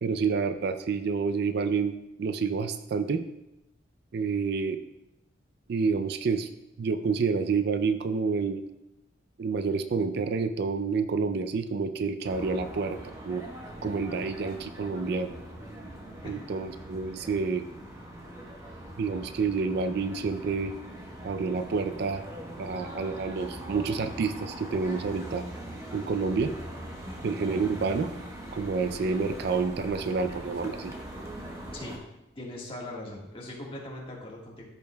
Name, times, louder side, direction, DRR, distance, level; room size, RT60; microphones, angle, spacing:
voice 1, 0.0-3.2 4.1-4.8 5.7-6.5 6.8-8.6 9.4-13.0 13.2-13.4 13.8-15.3 16.2-17.6 19.0-20.7 21.2-22.2 22.6-25.4 25.9-26.5 27.2-28.1 28.5-30.9, right 4 dB, 55° right, 10 dB, 0.4 m, -28 dB
sound 1, 12.2-32.0, right 1 dB, 15° right, 0.9 m, -41 dB
voice 2, 32.3-34.6, left 1 dB, 25° left, -3 dB, 1.5 m, -40 dB
13.5 x 5.3 x 2.2 m, 0.91 s
head